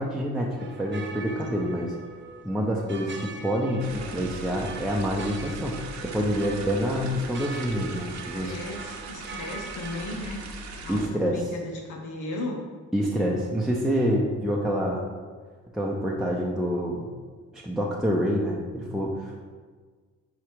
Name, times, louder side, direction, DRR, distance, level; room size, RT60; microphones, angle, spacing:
voice 1, 0.0-1.9 2.4-8.5 10.9-11.5 12.9-15.1 15.7-17.1 17.5-19.5, equal, ahead, -3 dB, 0.7 m, -27 dB
sound 1, 0.6-10.1, right 3 dB, 40° right, 1.0 m, -42 dB
sound 2, 3.8-11.1, right 3 dB, 65° right, 0.9 m, -40 dB
voice 2, 8.3-10.4 10.8-12.6, left 2 dB, 80° left, 1 dB, 0.8 m, -36 dB
4.9 x 4.8 x 4.7 m, 1.5 s
cardioid pair, 90°, 30 cm